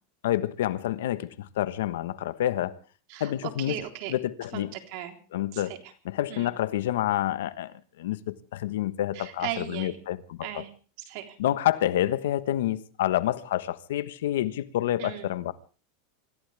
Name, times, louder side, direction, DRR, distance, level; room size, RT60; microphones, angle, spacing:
voice 1, 0.2-2.8 3.2-3.8 4.1-4.7 5.3-5.8 6.0-10.6 11.4-15.5, left 13 dB, 80° left, 1.3 m, -28 dB
voice 2, 3.1-4.1 4.5-5.2 5.5-5.9 6.3-6.5 9.1-10.0 10.4-10.7 11.1-11.4 15.0-15.3, right 12 dB, 55° right, 3.8 m, -37 dB
26.0 x 16.0 x 3.5 m
supercardioid pair, 145°, 0 cm